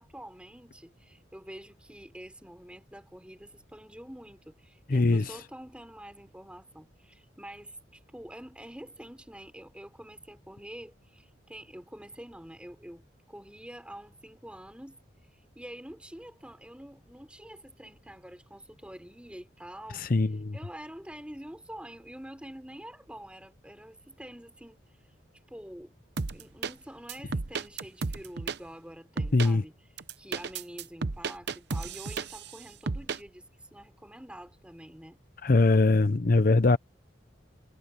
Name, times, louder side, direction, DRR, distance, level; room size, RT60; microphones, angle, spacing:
voice 1, 0.0-15.0 15.5-20.1 20.5-25.1 25.5-25.9 26.3-29.7 30.2-35.2, equal, 5° right, 4.5 m, -47 dB
voice 2, 4.9-5.4 19.9-20.6 29.3-29.6 35.4-36.8, left 3 dB, 50° left, 0.7 m, -22 dB
sound 1, 26.2-26.7 27.1-28.6 29.2-29.5 30.0-32.5 32.9-33.2, right 4 dB, 60° right, 0.8 m, -33 dB
head